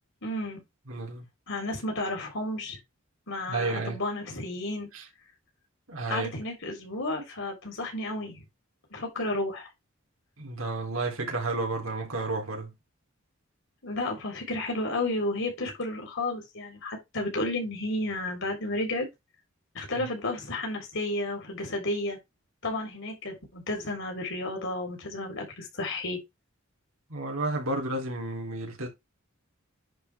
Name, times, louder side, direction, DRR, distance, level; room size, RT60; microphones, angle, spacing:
voice 1, 0.2-0.6 1.5-2.8 3.3-4.9 6.1-8.4 8.9-9.7 13.8-19.1 19.7-22.2 22.6-26.2, left 2 dB, 65° left, 3.7 m, -32 dB
voice 2, 0.9-1.2 3.5-4.0 4.9-5.1 5.9-6.3 10.4-12.7 20.0-20.1 27.1-28.9, right 2 dB, 85° right, 3.3 m, -31 dB
10.5 x 4.5 x 3.4 m
head